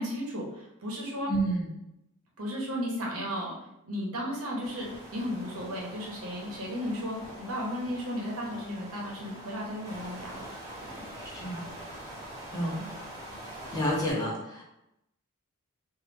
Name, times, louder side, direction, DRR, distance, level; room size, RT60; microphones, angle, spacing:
voice 1, 0.0-1.3 2.4-3.5 3.8-11.0, equal, 70° right, -2 dB, 1.0 m, -35 dB
voice 2, 1.3-1.7 11.1-11.7 12.5-12.9 13.7-14.6, right 1 dB, 15° left, -5 dB, 1.0 m, -30 dB
sound 1, 4.6-14.1, right 1 dB, 20° right, 1.4 m, -44 dB
3.2 x 2.7 x 4.0 m, 0.85 s
head